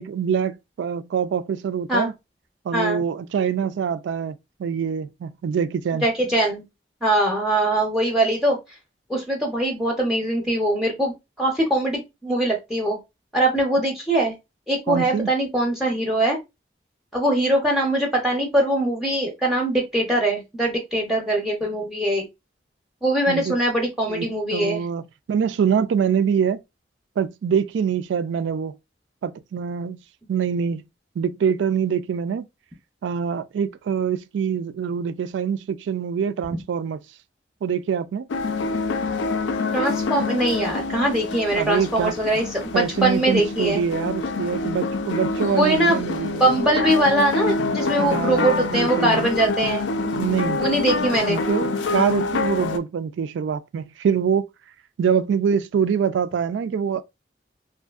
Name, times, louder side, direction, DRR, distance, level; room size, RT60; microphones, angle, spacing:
voice 1, 0.0-2.1 2.7-6.0 14.9-15.3 23.3-23.5 24.1-26.6 27.2-28.7 29.2-30.0 30.3-30.8 31.2-32.4 33.0-37.0 37.6-38.3 41.6-42.1 42.7-46.4 47.8-49.3 50.0-50.6 51.3-54.4 55.0-57.0, right 7 dB, 85° right, 0.3 m, -24 dB
voice 2, 2.7-3.0 6.0-6.6 7.0-8.6 9.1-13.0 13.3-14.3 14.7-16.4 17.1-22.3 23.0-24.8 39.7-43.8 45.5-46.0 46.4-49.9 50.6-51.4, right 1 dB, ahead, 0.5 m, -22 dB
sound 1, 38.3-52.8, left 3 dB, 85° left, 0.4 m, -26 dB
2.7 x 2.5 x 2.3 m
head